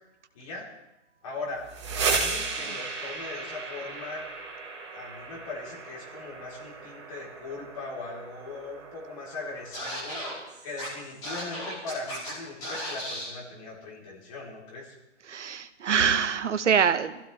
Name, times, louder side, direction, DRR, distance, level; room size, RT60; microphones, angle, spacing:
voice 1, 0.3-0.7 1.2-1.6 2.0-4.2 4.9-10.2 10.6-14.9, left 3 dB, 25° left, -4 dB, 4.0 m, -39 dB
sound 1, 1.5-11.3, right 4 dB, 25° right, 1.7 m, -35 dB
Scratching (performance technique), 9.7-10.3 10.8-10.9 11.2-12.3 12.6-13.3, equal, 10° left, 3.0 m, -35 dB
voice 2, 15.3-17.3, right 7 dB, 70° right, 11 dB, 1.2 m, -25 dB
22.5 x 15.5 x 3.4 m, 0.97 s
hypercardioid pair, 180°, 37 cm